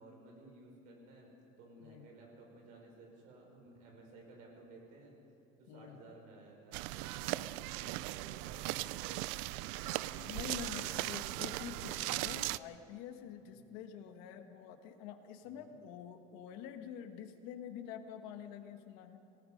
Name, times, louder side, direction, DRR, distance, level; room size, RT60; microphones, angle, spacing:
voice 1, 0.0-5.1 5.6-9.2 9.6-10.3 10.8-11.5 13.4-13.6 15.4-15.7, right 2 dB, 55° right, 0 dB, 5.8 m, -56 dB
voice 2, 1.8-2.2 5.7-6.1 9.8-9.9 10.3-19.2, left 9 dB, 70° left, 7 dB, 1.6 m, -47 dB
sound 1, 6.7-12.6, right 18 dB, 90° right, 0.5 m, -38 dB
27.0 x 18.5 x 5.3 m, 2.7 s
cardioid pair, 175°, 16 cm